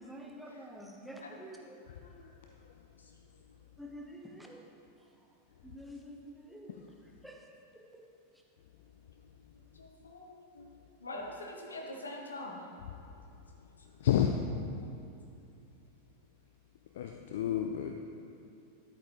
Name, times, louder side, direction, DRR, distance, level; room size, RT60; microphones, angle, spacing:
voice 1, 0.0-1.8 3.8-4.7 5.0-5.1 5.6-7.4 7.7-8.1, equal, 5° right, 0 dB, 1.0 m, -48 dB
voice 2, 9.8-10.7 11.0-12.6, left 1 dB, 75° left, 0 dB, 1.2 m, -43 dB
voice 3, 14.0-14.3 17.0-17.9, left 10 dB, 55° left, 4 dB, 0.4 m, -30 dB
11.0 x 8.2 x 3.4 m, 2.7 s
figure-of-eight pair, 90°, 0 cm